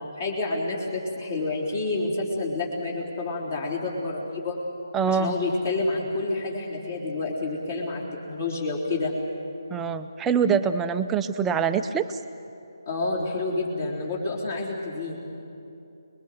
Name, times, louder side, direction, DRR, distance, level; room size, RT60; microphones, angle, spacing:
voice 1, 0.0-4.6 5.1-8.0 8.3-9.1 12.9-15.2, left 2 dB, 40° left, -3 dB, 3.8 m, -29 dB
voice 2, 4.9-5.3 9.7-12.2, right 6 dB, 5° right, 7 dB, 0.5 m, -24 dB
27.5 x 21.5 x 7.7 m, 2.9 s
figure-of-eight pair, 165°, 2 cm